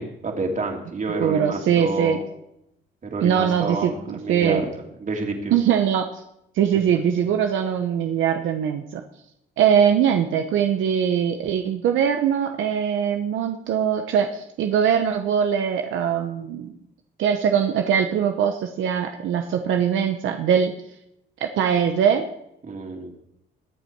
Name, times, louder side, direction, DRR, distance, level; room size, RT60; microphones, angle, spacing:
voice 1, 0.0-2.2 3.0-5.5 22.6-23.1, right 3 dB, 40° right, 2 dB, 2.9 m, -29 dB
voice 2, 1.2-2.2 3.2-4.6 5.5-6.1 6.5-9.0 9.6-16.7 17.2-20.7 21.4-22.3, right 8 dB, 80° right, 5 dB, 1.0 m, -21 dB
21.0 x 7.1 x 4.6 m, 0.80 s
cardioid pair, 90°, 20 cm